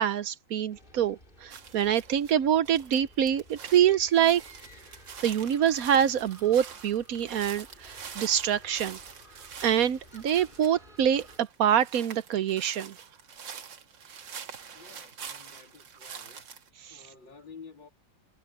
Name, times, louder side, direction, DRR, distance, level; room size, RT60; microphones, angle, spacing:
voice 1, 0.0-4.4 5.2-9.0 9.6-12.9 16.9-17.0, right 9 dB, 65° right, 1.0 m, -25 dB
sound 1, 0.7-11.4, left 1 dB, 25° left, 6.9 m, -55 dB
sound 2, 1.5-2.3 2.6-16.7, right 6 dB, 80° right, 2.4 m, -45 dB
voice 2, 14.7-16.5 16.9-17.9, left 5 dB, 85° left, 4.1 m, -51 dB
omnidirectional pair, 2.0 m